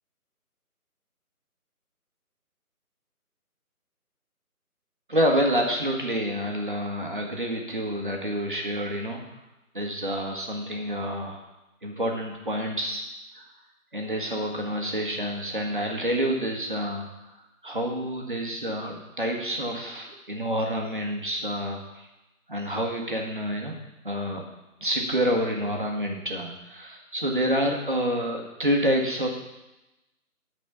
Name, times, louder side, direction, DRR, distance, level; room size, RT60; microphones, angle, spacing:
voice 1, 5.1-9.2 9.7-11.4 11.8-13.1 13.4-13.5 13.9-17.1 17.6-22.1 22.5-23.8 24.0-24.4 24.8-29.3, equal, 35° right, 0 dB, 1.3 m, -28 dB
12.0 x 4.2 x 5.6 m, 0.96 s
figure-of-eight pair, 180°, 45 cm